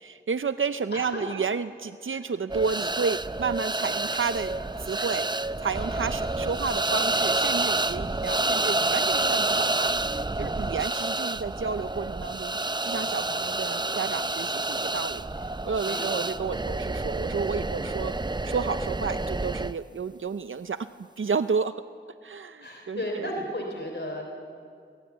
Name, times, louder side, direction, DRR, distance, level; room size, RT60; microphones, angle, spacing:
voice 1, 0.0-5.3 5.6-10.0 10.4-15.2 15.6-20.9 21.2-21.7 22.2-23.3, right 5 dB, 85° right, 11 dB, 0.5 m, -31 dB
sound 1, 2.5-19.7, right 2 dB, 20° right, 0.5 m, -28 dB
voice 2, 15.8-16.2 22.6-24.2, equal, 65° left, 1 dB, 3.2 m, -34 dB
23.5 x 22.0 x 8.1 m, 2.4 s
wide cardioid pair, 40°, 20 cm